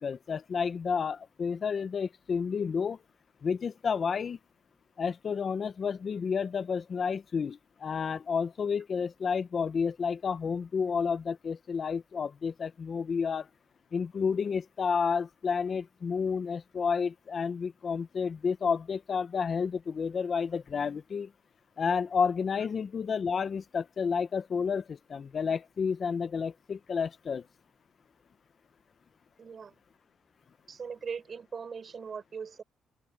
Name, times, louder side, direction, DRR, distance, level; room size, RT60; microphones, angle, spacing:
voice 1, 0.0-3.0 3.4-4.4 5.0-13.5 13.9-21.3 21.8-27.4, left 6 dB, 45° left, 1.2 m, -30 dB
voice 2, 29.4-29.7 30.7-32.6, right 6 dB, 45° right, 7.1 m, -40 dB
cardioid pair, 90°, 0 cm